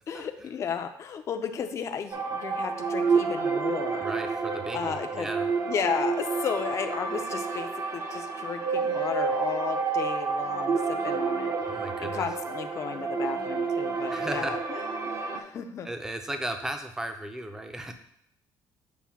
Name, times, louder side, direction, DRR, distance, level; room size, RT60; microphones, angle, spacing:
voice 1, 0.1-4.1 4.7-5.3 5.7-15.9, left 7 dB, 40° left, 7 dB, 0.5 m, -34 dB
sound 1, 2.1-15.4, right 4 dB, 45° right, 0.8 m, -29 dB
voice 2, 4.0-5.5 11.7-12.2 14.1-14.5 15.8-17.9, right 1 dB, 5° right, 6 dB, 0.5 m, -35 dB
7.0 x 2.6 x 5.8 m, 0.71 s
cardioid pair, 150°, 8 cm